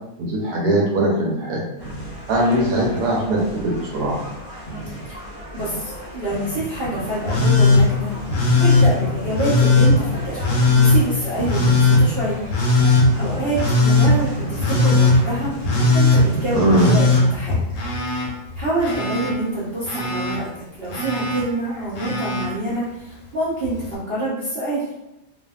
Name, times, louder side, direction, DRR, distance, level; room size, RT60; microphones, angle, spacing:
voice 1, 0.2-1.6 2.3-4.1 16.5-17.0, right 1 dB, 70° right, -3 dB, 1.1 m, -20 dB
sound 1, 1.8-17.1, right 1 dB, 40° left, 0.9 m, -32 dB
voice 2, 5.5-8.1 8.6-10.4 10.7-12.4 13.2-17.6 18.5-24.8, right 2 dB, 50° right, -10 dB, 0.7 m, -26 dB
Telephone, 7.3-7.8 8.3-8.9 9.4-9.9 10.4-11.0 11.5-12.0 12.5-13.1 13.6-14.1 14.6-15.2 15.6-16.2 16.7-18.3 18.5-19.3 19.9-20.4 20.9-21.4 22.0-22.5 23.7-23.8, left 4 dB, 65° left, 0.9 m, -17 dB
2.7 x 2.5 x 2.3 m, 0.89 s
omnidirectional pair, 2.0 m